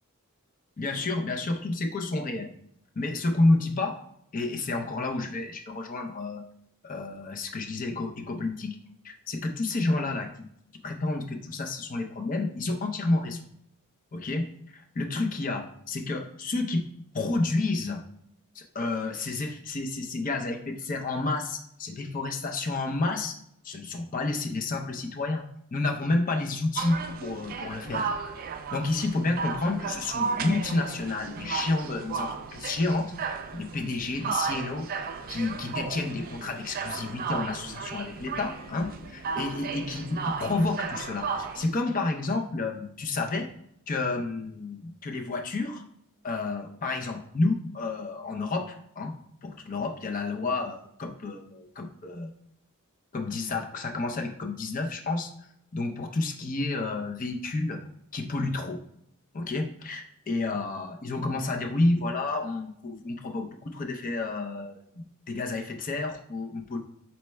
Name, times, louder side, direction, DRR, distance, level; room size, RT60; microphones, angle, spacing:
voice 1, 0.8-2.5 3.0-4.0 4.3-6.4 6.8-8.8 9.0-10.3 10.8-13.4 14.1-16.9 17.1-18.0 18.5-23.3 23.6-25.4 25.7-28.1 28.7-34.9 35.3-43.5 43.9-45.8 46.2-49.2 49.4-52.3 53.1-55.3 55.7-57.8 58.1-58.8 59.3-66.8, left 2 dB, 40° left, 3 dB, 0.5 m, -30 dB
sound 1, 26.8-41.7, right 5 dB, 40° right, 0.3 m, -34 dB
4.2 x 3.3 x 3.2 m, 0.71 s
head